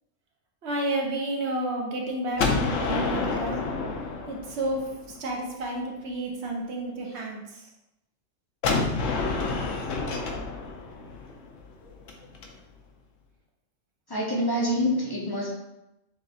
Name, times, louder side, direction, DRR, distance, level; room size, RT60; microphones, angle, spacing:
voice 1, 0.6-3.7 4.3-7.7, right 1 dB, 60° right, -1 dB, 1.0 m, -31 dB
Gunshot gunfire, 2.4-5.2 8.6-12.5, left 4 dB, 75° left, 1.0 m, -29 dB
voice 2, 14.1-15.5, equal, 25° left, -4 dB, 0.5 m, -26 dB
6.2 x 2.4 x 2.7 m, 0.92 s
omnidirectional pair, 1.3 m